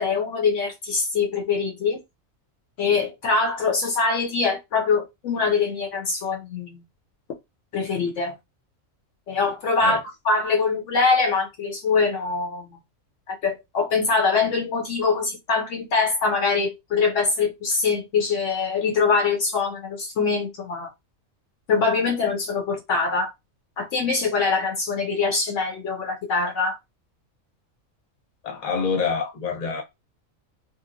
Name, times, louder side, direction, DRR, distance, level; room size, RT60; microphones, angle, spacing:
voice 1, 0.0-2.0 2.8-6.8 7.7-8.4 9.3-10.0 10.2-12.8 13.3-20.9 21.7-23.3 23.8-26.8, left 4 dB, 70° left, 0.9 m, -23 dB
voice 2, 28.4-29.8, left 5 dB, 40° left, 0.7 m, -26 dB
2.8 x 2.0 x 2.5 m
omnidirectional pair, 1.4 m